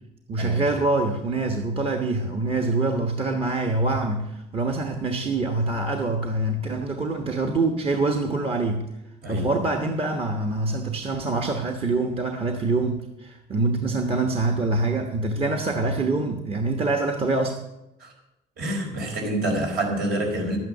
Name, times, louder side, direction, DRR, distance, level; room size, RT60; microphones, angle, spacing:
voice 1, 0.3-8.9 9.3-17.6, right 2 dB, 35° right, 4 dB, 1.2 m, -25 dB
voice 2, 18.6-20.6, right 1 dB, 70° right, 1 dB, 4.7 m, -27 dB
11.5 x 9.2 x 6.6 m, 0.93 s
cardioid pair, 110°, 17 cm